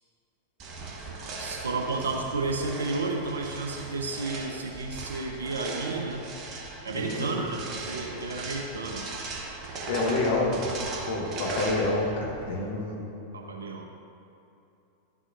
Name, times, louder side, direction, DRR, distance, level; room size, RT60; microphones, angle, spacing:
sound 1, 0.6-12.5, right 3 dB, 35° right, 1.0 m, -38 dB
voice 1, 1.4-6.3 6.8-9.0 13.3-13.9, right 3 dB, 70° right, 2 dB, 1.0 m, -32 dB
voice 2, 6.9-7.3 9.9-10.6 11.0-13.0, left 2 dB, 55° left, -2 dB, 1.6 m, -28 dB
12.0 x 6.2 x 2.7 m, 2.8 s
figure-of-eight pair, 90°, 0 cm